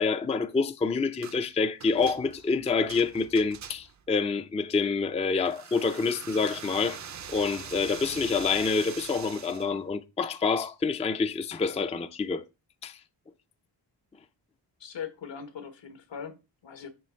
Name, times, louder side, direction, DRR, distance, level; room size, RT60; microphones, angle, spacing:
voice 1, 0.0-7.0 7.3-12.4 12.8-13.0, left 4 dB, 15° left, 0.3 m, -27 dB
sound 1, 1.2-1.4 1.8-4.1 5.4-9.7, right 8 dB, 40° right, 0.5 m, -43 dB
voice 2, 14.8-16.9, left 7 dB, 75° left, 1.4 m, -40 dB
7.6 x 3.2 x 6.3 m
wide cardioid pair, 165°, 45 cm